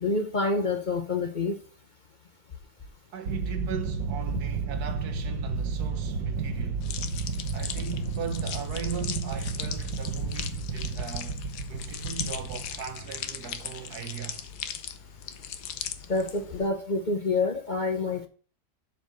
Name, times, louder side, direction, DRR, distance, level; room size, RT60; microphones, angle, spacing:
voice 1, 0.0-1.5 16.1-18.3, left 3 dB, 40° left, 0.7 m, -27 dB
voice 2, 3.1-6.9 7.5-11.4 11.7-14.5, right 7 dB, 65° right, 1.4 m, -38 dB
sound 1, 3.3-13.3, right 4 dB, 90° right, 1.6 m, -32 dB
sound 2, 6.8-16.7, left 9 dB, 75° left, 1.4 m, -39 dB
7.7 x 4.7 x 6.6 m
omnidirectional pair, 1.8 m